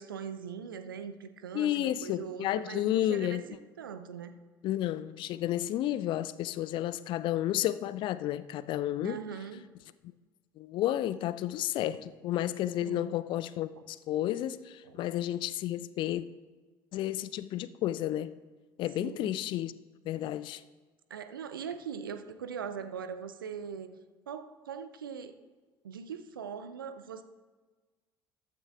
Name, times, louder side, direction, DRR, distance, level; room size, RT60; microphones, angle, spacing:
voice 1, 0.0-3.4 3.8-4.4 9.0-9.7 12.8-13.2 14.8-15.0 19.0-19.3 21.1-23.9 24.3-25.4 25.8-27.2, right 7 dB, 75° right, 0.7 m, -41 dB
voice 2, 1.5-3.4 4.6-9.2 10.6-16.2 16.9-18.3 18.8-19.7 20.1-20.6, left 13 dB, 45° left, 0.4 m, -31 dB
14.0 x 12.0 x 2.4 m
figure-of-eight pair, 60°, 11 cm